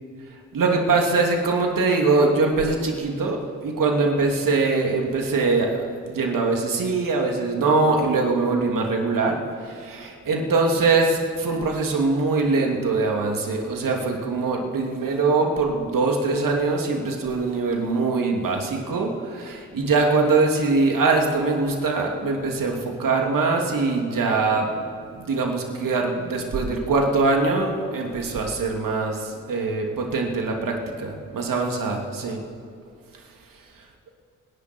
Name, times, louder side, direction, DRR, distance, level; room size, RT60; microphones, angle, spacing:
voice 1, 0.5-24.7 25.1-32.4, right 3 dB, 65° right, 1 dB, 2.9 m, -23 dB
25.5 x 11.0 x 4.6 m, 2.5 s
supercardioid pair, 45°, 36 cm